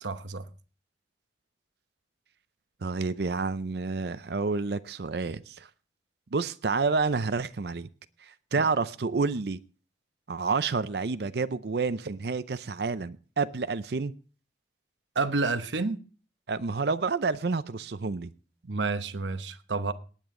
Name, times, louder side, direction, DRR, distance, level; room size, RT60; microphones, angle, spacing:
voice 1, 0.0-0.5 8.6-8.7 15.1-16.0 18.6-19.9, right 3 dB, 85° right, 1.0 m, -29 dB
voice 2, 2.8-5.7 6.3-7.9 8.2-9.6 10.3-14.1 16.5-18.3, right 4 dB, 65° right, 0.5 m, -29 dB
18.5 x 9.0 x 3.7 m
head